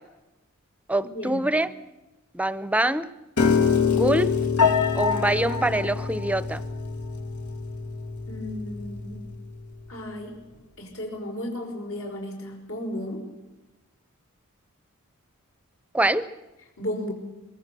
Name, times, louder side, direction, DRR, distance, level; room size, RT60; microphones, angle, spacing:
voice 1, 0.9-1.7 2.3-3.1 3.9-4.3 4.9-6.6 15.9-16.2, right 1 dB, 5° right, 15 dB, 0.7 m, -24 dB
Piano, 3.4-9.6, left 5 dB, 85° left, 2.5 m, -25 dB
voice 2, 8.3-9.2 9.9-10.4 10.8-13.3 16.8-17.1, left 1 dB, 70° left, 1 dB, 5.1 m, -34 dB
23.5 x 22.0 x 6.9 m, 1.0 s
head